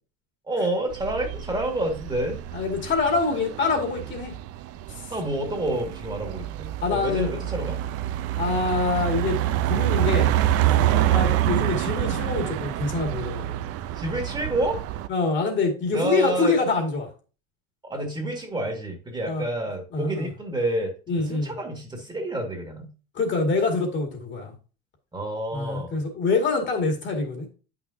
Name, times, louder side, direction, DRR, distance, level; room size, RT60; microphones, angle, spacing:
voice 1, 0.5-2.4 5.1-7.8 10.8-11.1 14.0-14.8 15.9-16.6 17.8-20.9 21.2-22.9 25.1-26.0, right 1 dB, 15° right, 3 dB, 1.9 m, -29 dB
sound 1, 0.9-15.1, right 13 dB, 55° right, 0.7 m, -27 dB
voice 2, 2.5-4.3 4.9-5.1 6.8-7.3 8.4-9.4 9.6-10.3 11.1-13.6 15.1-17.1 19.3-19.4 19.9-20.3 21.1-21.5 23.1-24.5 25.5-27.5, left 4 dB, 40° left, 3 dB, 2.2 m, -25 dB
8.7 x 5.9 x 2.7 m, 0.35 s
supercardioid pair, 120°, 30 cm